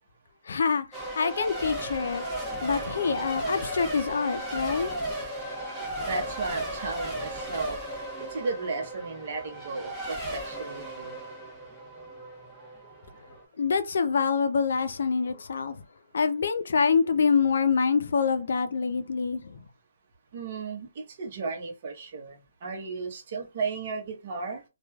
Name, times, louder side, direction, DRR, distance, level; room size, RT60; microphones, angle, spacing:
voice 1, 0.5-0.9 1.2-2.2 2.6-4.9 13.6-15.8 16.1-19.6, left 5 dB, 65° left, 0.4 m, -25 dB
Race car auto racing / Accelerating revving vroom / Mechanisms, 0.9-13.4, right 1 dB, ahead, 0.8 m, -35 dB
voice 2, 6.0-7.8 8.3-11.1 20.3-24.6, right 4 dB, 45° right, 0.8 m, -34 dB
3.0 x 2.2 x 2.2 m
hypercardioid pair, 165°, 0 cm